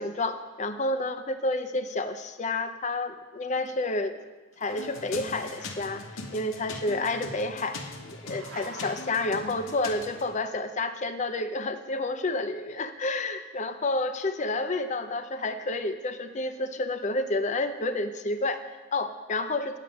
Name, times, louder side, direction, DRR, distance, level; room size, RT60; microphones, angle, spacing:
voice 1, 0.0-4.1 4.6-6.0 6.3-19.8, left 2 dB, 35° left, 9 dB, 0.5 m, -30 dB
Growling, 3.0-4.3 4.5-6.0 6.8-7.8 8.2-9.2, right 2 dB, 80° right, 1.2 m, -49 dB
sound 1, 4.7-10.3, left 3 dB, 65° left, 0.8 m, -41 dB
8.2 x 7.6 x 5.1 m, 1.2 s
head